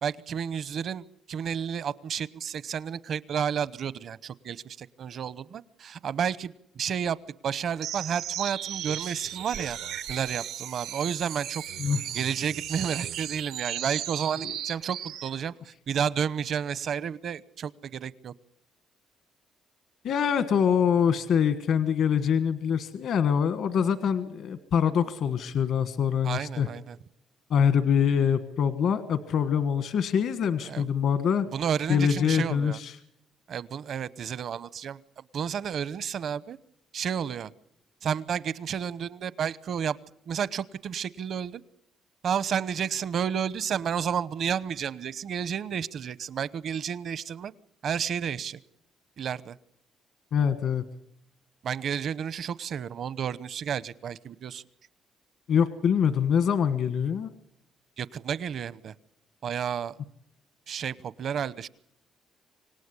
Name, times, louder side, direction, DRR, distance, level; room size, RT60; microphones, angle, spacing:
voice 1, 0.0-7.2 7.4-9.8 10.1-11.6 12.1-18.3 26.2-27.0 30.6-30.8 31.5-32.8 33.5-36.6 36.9-37.5 38.0-40.0 40.3-41.6 42.2-47.5 47.8-48.6 49.2-49.6 51.6-54.6 58.0-58.9 59.4-60.0 60.7-61.7, right 8 dB, 60° right, 18 dB, 0.9 m, -31 dB
sound 1, 7.8-15.4, right 10 dB, 90° right, 1.0 m, -35 dB
voice 2, 20.0-26.7 27.5-31.5 31.9-33.0 50.3-50.8 55.5-57.3, left 7 dB, 70° left, 11 dB, 1.4 m, -24 dB
26.0 x 18.0 x 9.8 m, 0.77 s
cardioid pair, 90°, 0 cm